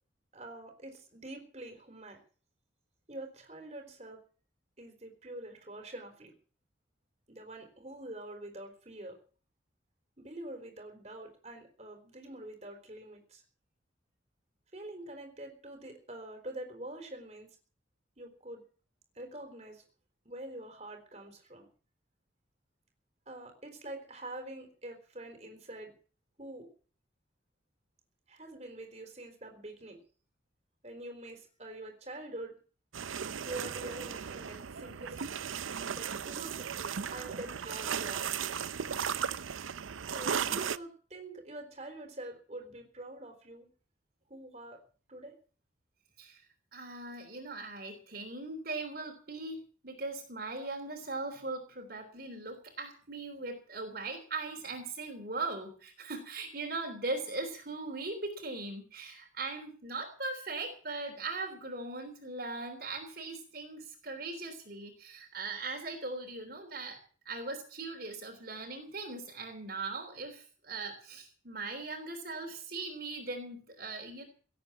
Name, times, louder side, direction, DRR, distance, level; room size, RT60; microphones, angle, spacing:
voice 1, 0.3-2.2 3.1-4.2 4.8-6.3 7.3-9.2 10.2-13.4 14.7-17.5 18.2-18.6 19.1-19.8 20.3-21.7 23.3-25.9 26.4-26.7 28.3-30.0 30.8-32.6 33.4-35.4 35.9-36.8 37.1-38.3 40.1-43.7 44.3-44.8 45.1-45.4, right 1 dB, 35° right, 4 dB, 4.0 m, -45 dB
sound 1, 32.9-40.8, right 7 dB, 85° right, 0.6 m, -36 dB
voice 2, 46.7-67.0 67.3-74.3, right 3 dB, 50° right, 2 dB, 3.5 m, -39 dB
17.5 x 8.6 x 8.4 m, 0.42 s
head